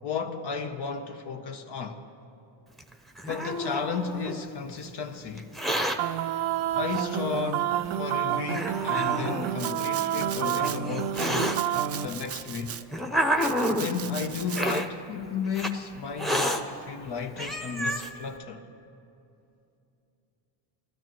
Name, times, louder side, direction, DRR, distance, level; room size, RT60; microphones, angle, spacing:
voice 1, 0.0-2.0 3.3-5.5 6.7-11.6 12.0-12.8 13.8-18.7, left 5 dB, 55° left, 0.8 m, -33 dB
Hiss, 2.8-4.4 5.4-6.0 6.9-7.0 7.8-7.9 8.5-9.5 10.4-11.6 12.4-13.9 14.5-14.9 15.5-15.7 16.2-16.6 17.1-17.2 17.4-18.1, equal, ahead, 0.8 m, -29 dB
sound 1, 6.0-12.1, right 11 dB, 70° right, 0.6 m, -29 dB
Domestic sounds home sounds, 9.6-10.8 11.1-12.8 13.4-14.8, right 9 dB, 30° right, 0.4 m, -39 dB
19.0 x 12.5 x 3.0 m
supercardioid pair, 75°, 49 cm